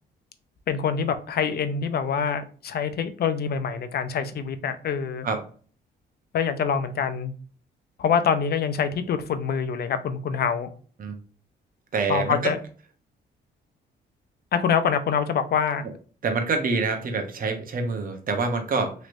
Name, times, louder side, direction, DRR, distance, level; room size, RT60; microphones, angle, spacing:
voice 1, 0.7-5.3 6.3-7.3 8.0-10.7 12.1-12.6 14.5-15.8, left 7 dB, 55° left, 10 dB, 0.5 m, -25 dB
voice 2, 11.9-12.5 16.2-18.9, right 4 dB, 45° right, 5 dB, 0.9 m, -26 dB
3.2 x 3.0 x 2.6 m, 0.41 s
cardioid pair, 90°, 20 cm